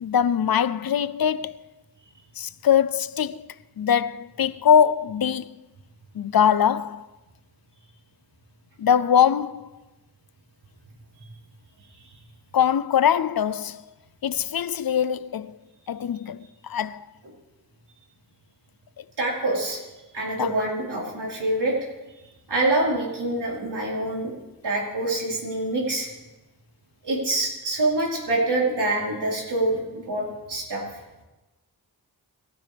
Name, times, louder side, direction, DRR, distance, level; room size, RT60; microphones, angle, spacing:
voice 1, 0.0-1.7 2.4-5.6 6.1-7.1 8.8-9.7 12.5-13.8 14.2-15.6 15.9-17.1 19.0-19.1 20.4-20.5, left 8 dB, 65° left, 0.6 m, -22 dB
voice 2, 19.2-19.8 20.1-21.8 22.5-24.3 24.6-26.1 27.0-30.8, right 2 dB, 90° right, 4.6 m, -25 dB
26.5 x 13.0 x 3.5 m
cardioid pair, 50°, 39 cm